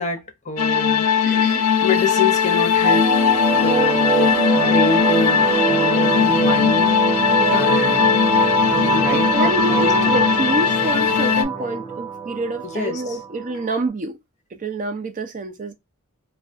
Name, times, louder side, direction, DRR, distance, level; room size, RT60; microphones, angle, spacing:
voice 1, 0.0-1.1 1.8-8.3 8.7-9.9 12.6-13.2, left 3 dB, 35° left, 0.7 m, -27 dB
sound 1, 0.6-11.4, left 7 dB, 75° left, 0.4 m, -19 dB
voice 2, 1.2-1.7 7.2-7.8 9.1-14.2 14.6-15.7, right 2 dB, 40° right, 0.4 m, -27 dB
sound 2, 2.8-13.8, right 6 dB, 20° right, 1.0 m, -24 dB
2.3 x 2.2 x 2.5 m
head